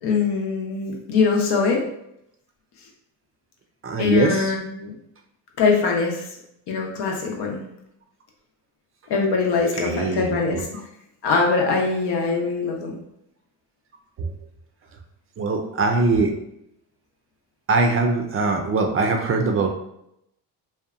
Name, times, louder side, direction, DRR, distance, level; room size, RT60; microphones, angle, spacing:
voice 1, 0.0-1.8 4.0-4.9 5.6-6.3 6.7-7.6 9.1-10.6 11.2-13.0, left 4 dB, 85° left, 0 dB, 0.7 m, -22 dB
voice 2, 3.8-4.5 9.7-10.6 14.2-14.4 15.4-16.3 17.7-19.7, right 3 dB, 35° right, 4 dB, 0.4 m, -22 dB
2.7 x 2.2 x 2.4 m, 0.78 s
cardioid pair, 100°, 39 cm